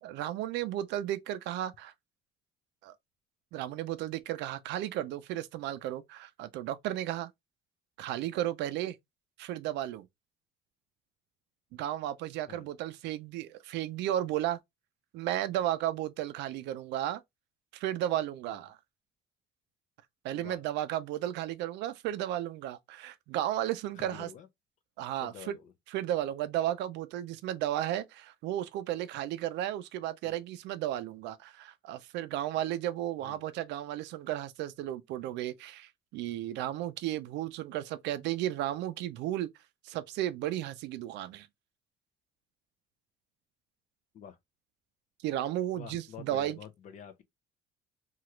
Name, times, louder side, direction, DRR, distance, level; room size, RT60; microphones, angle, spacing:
voice 1, 0.0-1.9 2.8-3.0 3.5-7.3 8.0-9.0 9.4-10.1 11.7-14.6 15.1-17.2 17.7-18.8 20.2-24.3 25.0-25.5 25.9-39.5 39.8-41.5 45.2-46.6, right 12 dB, 75° right, 0.4 m, -34 dB
voice 2, 23.9-24.5 25.2-25.7 30.2-30.4 33.2-33.5 44.1-44.4 45.8-47.2, left 8 dB, 45° left, 0.5 m, -48 dB
2.9 x 2.4 x 3.0 m
cardioid pair, 170°, 18 cm